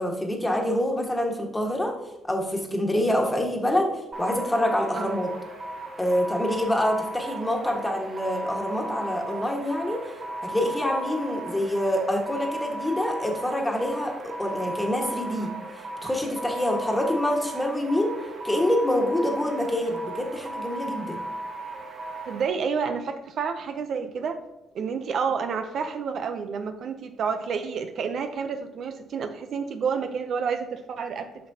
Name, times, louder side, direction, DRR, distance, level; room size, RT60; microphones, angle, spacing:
voice 1, 0.0-1.9 2.2-5.3 6.0-10.1 10.4-15.5 15.8-18.1 18.4-21.2, left 1 dB, 10° left, 1 dB, 1.5 m, -26 dB
sound 1, 4.1-22.5, right 1 dB, 45° right, 2.0 m, -36 dB
voice 2, 22.3-24.4 24.7-31.3, right 6 dB, 65° right, 7 dB, 0.6 m, -29 dB
8.4 x 5.9 x 2.8 m, 0.98 s
cardioid pair, 90°, 0 cm